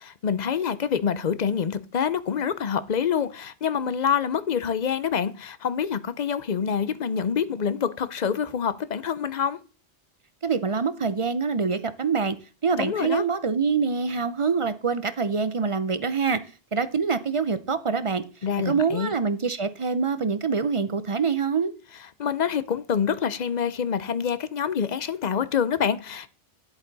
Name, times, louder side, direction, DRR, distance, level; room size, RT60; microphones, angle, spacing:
voice 1, 0.0-9.6 12.8-13.2 18.4-19.1 22.2-26.3, left 7 dB, 45° left, 0.7 m, -26 dB
voice 2, 10.4-12.4 12.6-16.4 16.7-18.2 18.6-21.7, right 5 dB, 40° right, 0.5 m, -25 dB
10.0 x 8.2 x 4.0 m
omnidirectional pair, 1.1 m